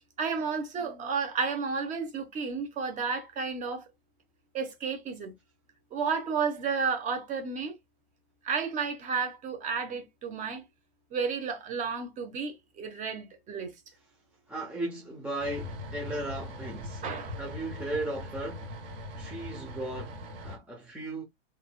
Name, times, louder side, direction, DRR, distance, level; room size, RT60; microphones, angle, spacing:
voice 1, 0.2-3.8 4.5-5.3 5.9-7.7 8.4-10.6 11.1-13.7 17.0-17.4, right 5 dB, 25° right, 1.0 m, -32 dB
voice 2, 14.5-17.0 17.4-18.7 19.2-21.2, right 1 dB, 5° right, 0.6 m, -36 dB
sound 1, 15.4-20.6, left 1 dB, 60° right, 1.8 m, -40 dB
3.7 x 3.2 x 2.2 m
hypercardioid pair, 140°, 32 cm